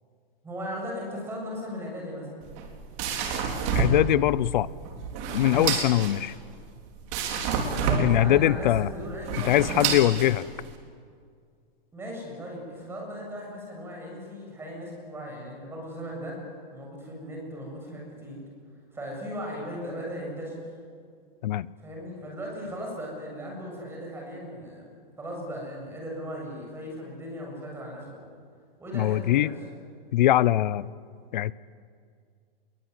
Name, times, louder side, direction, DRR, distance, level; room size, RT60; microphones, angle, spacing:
voice 1, 0.4-2.3 7.9-10.4 11.9-16.4 16.7-18.4 18.9-20.6 21.8-24.8 25.2-28.3 28.8-29.5, equal, 10° right, -1 dB, 7.4 m, -37 dB
sound 1, 2.4-10.8, right 5 dB, 35° right, 3.9 m, -29 dB
voice 2, 3.7-4.7 5.3-6.3 8.0-8.9 9.5-10.5 21.4-21.7 28.9-29.5 30.1-30.9 31.3-31.5, left 13 dB, 55° left, 20 dB, 0.8 m, -22 dB
27.5 x 22.5 x 9.5 m, 2.1 s
hypercardioid pair, 165°, 29 cm